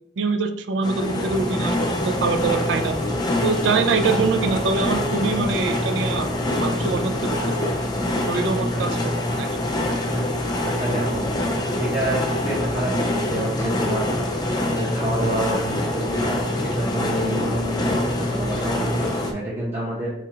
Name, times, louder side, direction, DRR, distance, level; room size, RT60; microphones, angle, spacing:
voice 1, 0.2-3.0 3.4-6.3 6.5-7.7 8.3-9.1 9.4-9.5, right 4 dB, 70° right, 8 dB, 0.4 m, -24 dB
sound 1, 0.8-19.3, left 1 dB, 20° left, 0.4 m, -25 dB
voice 2, 10.0-11.3 11.8-14.1 14.7-20.1, right 1 dB, 35° right, -7 dB, 0.9 m, -28 dB
4.5 x 2.3 x 2.9 m, 0.80 s
head